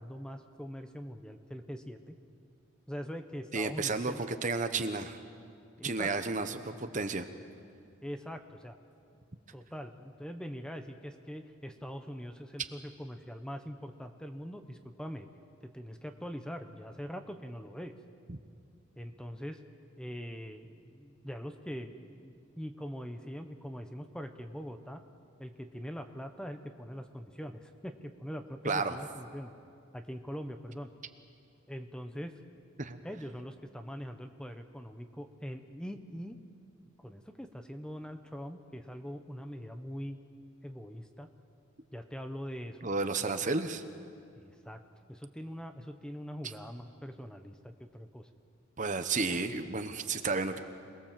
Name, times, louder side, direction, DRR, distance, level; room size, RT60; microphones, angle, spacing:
voice 1, 0.0-2.1 2.9-4.2 5.8-6.1 8.0-8.8 9.5-15.3 15.6-17.9 19.0-19.6 20.0-25.0 25.4-29.5 29.9-30.9 31.7-32.6 33.0-36.4 37.0-40.2 40.6-41.3 41.9-42.9 44.4-44.8 45.1-48.3, equal, 5° left, 7 dB, 0.9 m, -42 dB
voice 2, 3.5-5.2 5.8-7.3 18.3-18.4 28.6-29.0 32.8-33.0 42.8-43.8 48.8-50.6, right 3 dB, 40° right, 9 dB, 1.0 m, -32 dB
26.5 x 20.5 x 7.5 m, 2.4 s
head